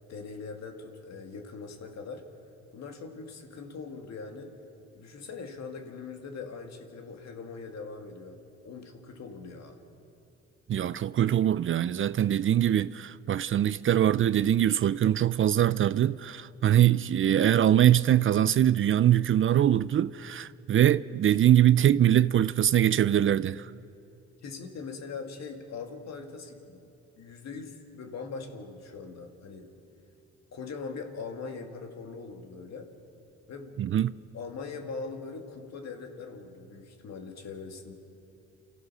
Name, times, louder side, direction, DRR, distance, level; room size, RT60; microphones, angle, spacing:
voice 1, 0.1-2.3 2.7-4.5 4.9-8.4 8.6-9.8 24.4-26.9 27.2-29.7 30.5-32.9 33.5-34.0 34.3-37.9, left 4 dB, 60° left, 2.2 m, -41 dB
voice 2, 10.7-23.7 33.8-34.1, right 11 dB, 45° right, 0.4 m, -23 dB
28.5 x 15.0 x 6.2 m
cardioid pair, 90°, 30 cm